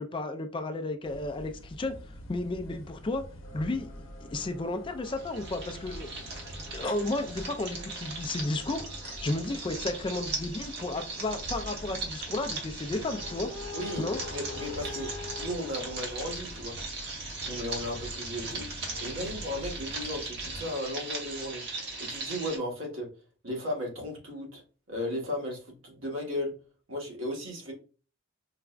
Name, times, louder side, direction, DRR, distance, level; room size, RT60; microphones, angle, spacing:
voice 1, 0.0-1.9 2.3-3.2 3.5-6.1 6.7-13.5 14.0-14.2, left 2 dB, 25° left, 7 dB, 0.3 m, -33 dB
sound 1, 1.0-20.7, left 1 dB, 80° left, 0.7 m, -44 dB
sound 2, 3.4-9.8, right 1 dB, 55° left, 0.9 m, -54 dB
sound 3, 5.0-22.6, right 3 dB, 55° right, 1.1 m, -39 dB
voice 2, 13.7-14.0 14.3-15.1 15.4-16.8 17.4-18.7 19.0-21.6 22.0-23.1 23.4-24.6 24.9-26.5 26.9-27.7, left 1 dB, 80° right, -1 dB, 1.3 m, -35 dB
4.7 x 2.2 x 2.4 m, 0.36 s
head